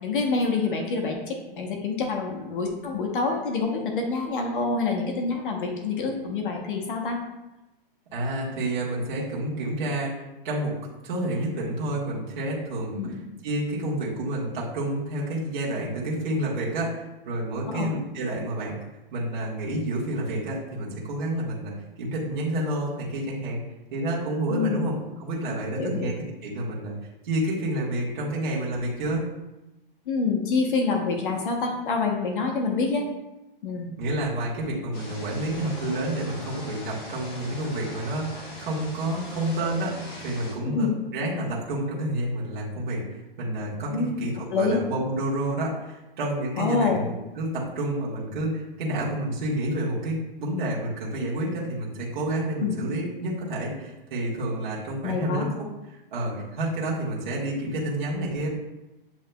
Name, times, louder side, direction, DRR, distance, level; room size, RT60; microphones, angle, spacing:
voice 1, 0.0-7.2 13.0-13.1 17.7-17.9 24.5-24.9 25.8-26.1 30.1-33.0 33.6-33.9 40.7-40.9 43.9-44.1 44.5-44.8 46.6-47.0 52.6-52.8 55.0-55.5, left 4 dB, 60° left, 2 dB, 0.9 m, -26 dB
voice 2, 8.1-10.7 11.0-13.0 13.4-18.8 19.1-23.6 23.9-26.1 26.4-26.9 27.2-29.3 34.0-40.0 40.2-58.5, right 1 dB, 55° right, -6 dB, 1.5 m, -29 dB
sound 1, 34.9-40.5, left 1 dB, 15° left, 0.5 m, -40 dB
8.3 x 2.8 x 2.2 m, 0.98 s
hypercardioid pair, 170°, 29 cm